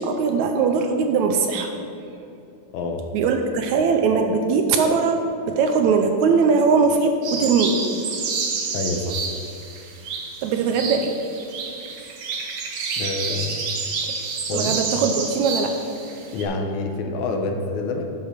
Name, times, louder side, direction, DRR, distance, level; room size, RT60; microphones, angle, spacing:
voice 1, 0.0-1.7 3.1-7.8 10.4-11.2 14.5-15.8, right 5 dB, 80° right, 5 dB, 1.9 m, -20 dB
voice 2, 2.7-3.0 8.7-9.2 13.0-13.7 14.5-14.8 16.3-18.1, left 3 dB, 75° left, 4 dB, 2.0 m, -27 dB
sound 1, 7.2-16.4, right 4 dB, 60° right, 1.7 m, -29 dB
11.0 x 5.4 x 6.5 m, 2.6 s
omnidirectional pair, 3.6 m